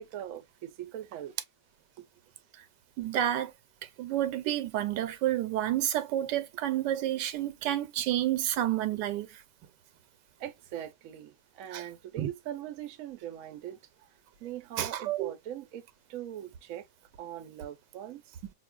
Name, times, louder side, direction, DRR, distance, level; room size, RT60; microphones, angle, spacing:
voice 1, 0.0-1.3 2.0-2.1 10.4-14.1 14.4-16.9 17.2-18.4, right 11 dB, 60° right, 1.0 m, -41 dB
voice 2, 3.0-3.5 4.0-9.4 11.7-11.8 12.2-12.3 14.8-15.3, right 12 dB, 90° right, 1.3 m, -30 dB
5.8 x 2.4 x 2.2 m
omnidirectional pair, 1.8 m